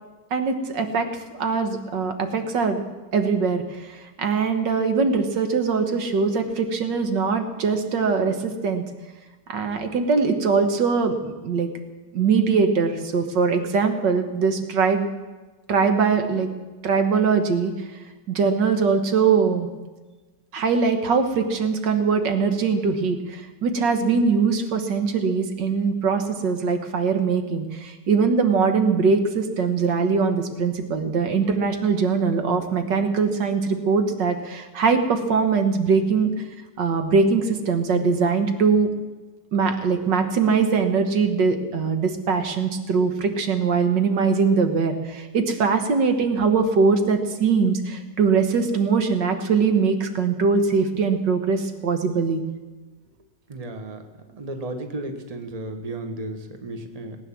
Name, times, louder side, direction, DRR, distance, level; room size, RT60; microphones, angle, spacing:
voice 1, 0.3-1.1 1.3-2.8 3.1-8.8 9.5-11.7 12.1-15.1 15.7-16.5 16.8-17.7 18.3-19.7 20.5-36.4 36.8-38.9 39.5-52.4, right 5 dB, 90° right, 7 dB, 2.0 m, -22 dB
voice 2, 53.5-54.0 54.3-57.2, right 2 dB, 25° right, 6 dB, 1.3 m, -33 dB
19.0 x 9.2 x 7.4 m, 1.2 s
omnidirectional pair, 1.9 m